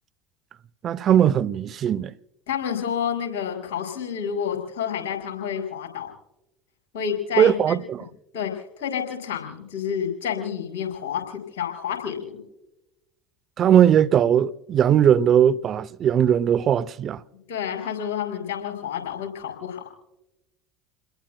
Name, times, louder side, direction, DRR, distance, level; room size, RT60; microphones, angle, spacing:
voice 1, 0.8-2.1 7.4-8.0 13.6-17.2, right 9 dB, 45° right, 0.5 m, -19 dB
voice 2, 2.5-6.1 6.9-7.8 8.3-12.4 17.5-19.8, left 8 dB, 70° left, 4.9 m, -29 dB
30.0 x 21.5 x 2.2 m
hypercardioid pair, 70°, 0 cm